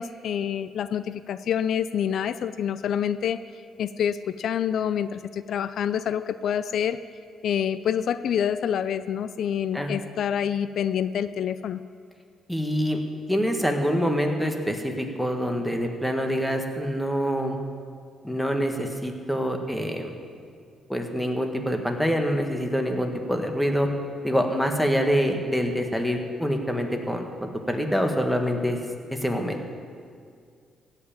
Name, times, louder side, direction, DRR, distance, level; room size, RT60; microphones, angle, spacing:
voice 1, 0.0-3.4 3.8-7.0 7.4-11.8, left 8 dB, 70° left, 13 dB, 0.3 m, -27 dB
voice 2, 12.5-13.0 13.3-17.6 18.2-20.1 20.9-23.9 24.2-28.8 29.2-29.6, equal, ahead, 3 dB, 1.6 m, -25 dB
15.5 x 5.8 x 8.8 m, 2.2 s
cardioid pair, 90°, 0 cm